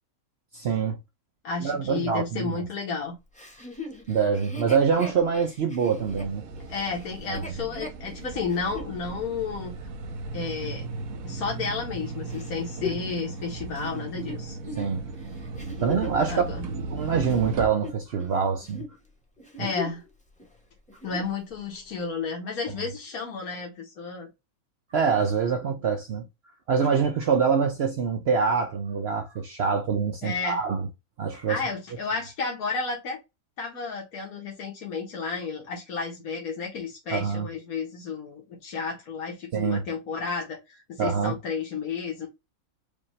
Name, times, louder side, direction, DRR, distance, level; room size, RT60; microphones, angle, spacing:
voice 1, 0.5-1.0 1.6-2.6 4.1-6.4 7.3-7.4 14.8-15.1 15.8-16.4 16.9-18.8 19.6-19.7 24.9-26.2 26.7-30.8 31.2-31.6 37.1-37.5 39.5-39.8 41.0-41.3, right 6 dB, 55° right, 0.8 m, -25 dB
voice 2, 1.4-3.2 6.7-9.7 10.3-10.8 11.2-14.6 16.3-16.7 19.6-20.0 21.0-24.3 30.2-30.6 31.5-33.2 33.6-42.3, left 4 dB, 90° left, 1.6 m, -32 dB
Chuckle chortle, 3.3-8.9 9.5-9.6 12.3-16.3 16.9-18.4 18.6-18.9 19.4-20.1 20.4-20.5 20.9-21.4 22.0-22.1, left 4 dB, 5° left, 1.1 m, -39 dB
sound 1, 6.0-17.7, right 3 dB, 75° right, 1.2 m, -36 dB
5.1 x 2.7 x 3.1 m
omnidirectional pair, 1.5 m